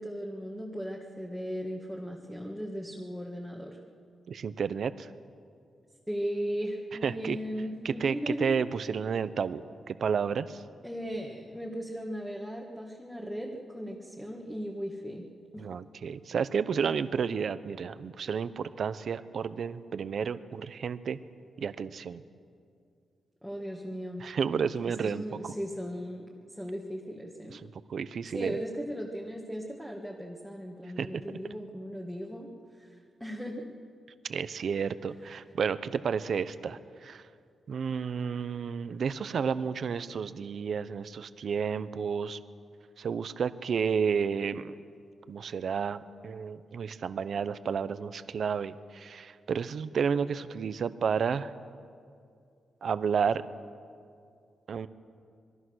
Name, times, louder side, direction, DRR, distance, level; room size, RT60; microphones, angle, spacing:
voice 1, 0.0-3.8 6.1-8.5 10.8-15.3 15.5-15.7 23.4-24.2 25.0-27.6 28.3-32.5 32.8-33.7, equal, 5° left, -1 dB, 1.7 m, -37 dB
voice 2, 4.3-5.1 7.0-7.4 7.8-10.6 15.6-21.2 21.6-22.2 24.2-25.5 27.5-27.6 27.9-28.6 31.0-31.4 34.3-37.2 37.7-42.4 43.0-44.7 45.3-51.5 52.8-53.4 54.7-54.9, right 6 dB, 55° right, 13 dB, 0.8 m, -31 dB
26.5 x 22.0 x 6.4 m, 2.3 s
wide cardioid pair, 160°, 0 cm